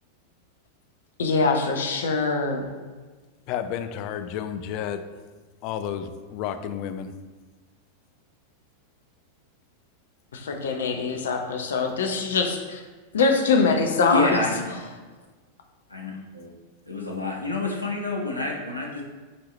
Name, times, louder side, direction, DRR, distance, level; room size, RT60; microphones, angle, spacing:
voice 1, 1.2-2.7 10.3-12.8 13.1-14.4, left 4 dB, 65° left, 4 dB, 0.8 m, -23 dB
voice 2, 3.5-5.0 5.6-7.1, left 9 dB, 40° left, 9 dB, 0.4 m, -31 dB
voice 3, 14.1-14.7 15.9-16.5 16.9-19.0, left 2 dB, 85° left, -2 dB, 1.1 m, -28 dB
7.0 x 4.6 x 3.1 m, 1.3 s
figure-of-eight pair, 90°, 0 cm